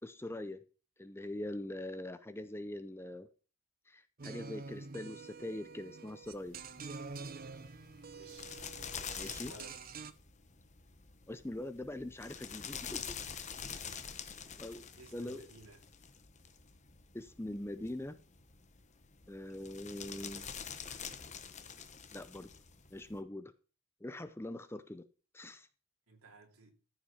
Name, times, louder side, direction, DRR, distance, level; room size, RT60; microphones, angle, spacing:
voice 1, 0.0-0.6 1.0-3.3 3.9-6.6 9.1-9.5 11.3-13.2 14.6-14.8 15.1-15.4 17.1-18.2 19.3-20.5 22.1-22.5 22.9-23.5 24.0-25.0 25.3-25.7, left 1 dB, 10° left, 0.5 m, -42 dB
sound 1, 4.2-10.1, right 4 dB, 45° right, 0.7 m, -47 dB
sound 2, 6.2-23.2, left 7 dB, 35° left, 1.0 m, -47 dB
voice 2, 8.1-8.6 9.2-9.8 15.0-15.8 26.1-26.7, right 3 dB, 85° right, 2.5 m, -55 dB
14.0 x 5.8 x 5.7 m
head